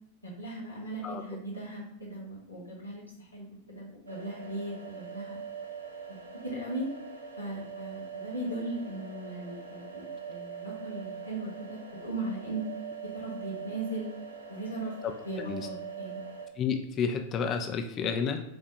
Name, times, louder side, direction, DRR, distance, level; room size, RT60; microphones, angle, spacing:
voice 1, 0.2-5.4 6.4-6.9 7.4-12.6 13.0-14.1 14.5-14.9 15.2-16.2, right 2 dB, 80° left, -4 dB, 1.3 m, -38 dB
sound 1, 4.1-16.5, right 6 dB, 80° right, 0.6 m, -43 dB
voice 2, 16.6-18.4, left 6 dB, 30° left, 6 dB, 0.4 m, -30 dB
4.6 x 2.4 x 3.8 m, 0.87 s
figure-of-eight pair, 90°, 0 cm